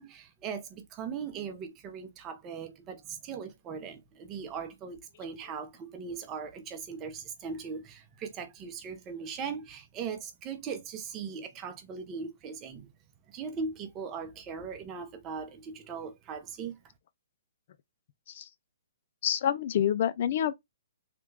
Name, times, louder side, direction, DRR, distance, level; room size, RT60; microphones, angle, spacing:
voice 1, 0.0-12.9 13.3-16.8, right 6 dB, 25° right, 0.7 m, -39 dB
voice 2, 19.2-20.5, left 10 dB, 50° left, 0.4 m, -27 dB
3.3 x 2.3 x 3.2 m
hypercardioid pair, 145°, 0 cm